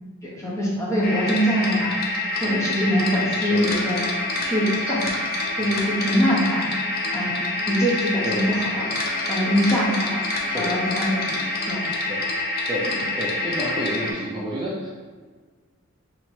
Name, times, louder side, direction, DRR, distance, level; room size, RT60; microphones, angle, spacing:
voice 1, 0.2-2.0 2.4-4.1 4.4-5.1 5.5-6.7 7.1-8.9 9.3-10.2 10.5-11.4 11.6-11.8, equal, 15° left, -6 dB, 0.8 m, -23 dB
sound 1, 1.0-14.1, left 2 dB, 40° left, 0.5 m, -27 dB
voice 2, 3.4-3.7 8.2-8.5 10.5-10.7 12.1-12.2 12.7-12.9 13.2-14.9, equal, 20° right, -7 dB, 0.5 m, -29 dB
2.9 x 2.9 x 4.4 m, 1.5 s
head